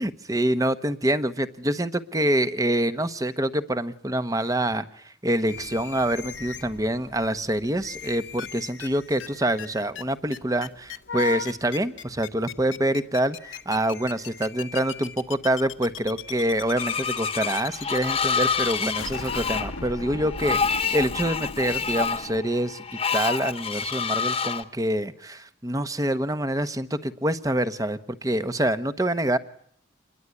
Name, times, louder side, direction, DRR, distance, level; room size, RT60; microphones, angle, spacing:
voice 1, 0.0-22.8 23.1-29.4, right 1 dB, 15° right, 12 dB, 1.1 m, -26 dB
sound 1, 5.5-20.3, left 6 dB, 55° left, 1.2 m, -43 dB
sound 2, 8.4-8.5 8.8-8.9 9.2-9.3 9.6-9.7 9.9-10.0 10.3-22.4, left 5 dB, 75° left, 1.3 m, -37 dB
Screech, 16.7-24.6, left 6 dB, 30° left, 1.3 m, -28 dB
27.0 x 21.5 x 9.6 m, 0.65 s
head